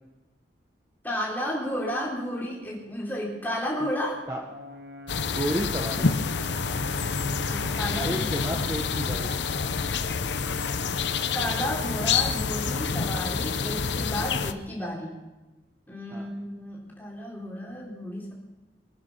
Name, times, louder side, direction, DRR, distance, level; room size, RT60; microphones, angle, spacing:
voice 1, 1.0-4.2 7.5-8.7 11.3-15.1 15.9-18.3, equal, 10° left, -4 dB, 4.1 m, -32 dB
Brass instrument, 4.4-8.7, left 2 dB, 60° right, 1.0 m, -43 dB
sound 1, 5.1-14.5, left 5 dB, 75° left, 0.8 m, -28 dB
voice 2, 5.3-6.2 8.0-9.4 16.1-16.3, right 1 dB, 15° right, 1 dB, 1.1 m, -32 dB
25.0 x 9.9 x 5.7 m, 1.1 s
head